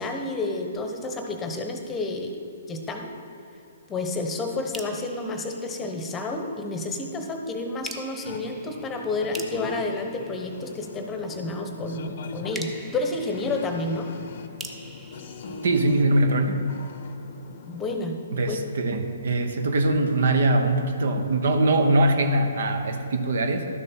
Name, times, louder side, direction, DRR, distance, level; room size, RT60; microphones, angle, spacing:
voice 1, 0.0-2.4 2.7-3.1 3.9-14.1 17.7-18.2 18.5-18.6, left 2 dB, 15° left, 4 dB, 0.9 m, -30 dB
sound 1, 4.7-6.5 7.8-11.2 12.5-16.4, right 2 dB, 10° right, 0.7 m, -44 dB
sound 2, 8.2-17.9, left 4 dB, 55° left, 0.6 m, -41 dB
voice 2, 15.6-16.7 18.3-23.7, right 2 dB, 65° right, 7 dB, 0.8 m, -22 dB
12.0 x 6.5 x 4.4 m, 2.8 s
hypercardioid pair, 130°, 0 cm